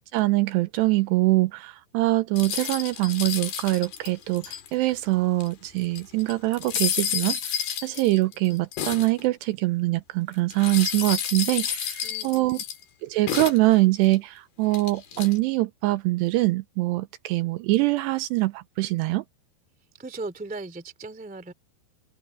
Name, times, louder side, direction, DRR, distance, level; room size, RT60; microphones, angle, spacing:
voice 1, 0.1-12.6 13.0-19.2, right 20 dB, 80° right, 2.6 m, -24 dB
sound 1, 2.4-4.9 5.4-5.5 5.8-9.2 10.5-12.8 13.3-14.2 14.7-15.4, left 9 dB, 60° left, 4.3 m, -30 dB
voice 2, 12.0-12.6 20.0-21.5, right 3 dB, 5° right, 1.1 m, -37 dB
omnidirectional pair, 5.2 m